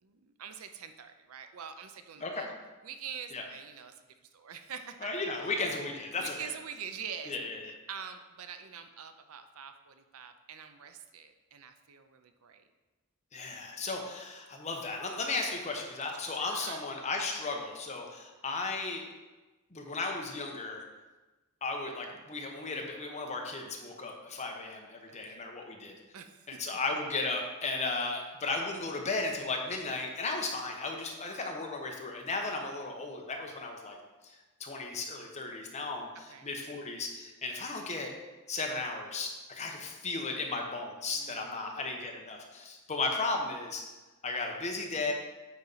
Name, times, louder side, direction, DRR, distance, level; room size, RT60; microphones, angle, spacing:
voice 1, 0.0-2.5 2.8-3.9 4.2-5.5 6.1-7.4 7.9-12.6 16.3-16.8 25.1-25.4 26.1-26.8 36.3-36.5 41.1-41.8, right 7 dB, 80° right, 8 dB, 0.6 m, -45 dB
voice 2, 5.0-6.3 7.3-7.7 13.3-19.0 19.7-20.8 21.6-25.9 26.5-34.0 34.2-38.1 38.5-43.9 44.2-45.1, left 3 dB, 30° left, 2 dB, 0.9 m, -35 dB
8.8 x 4.3 x 4.0 m, 1.2 s
head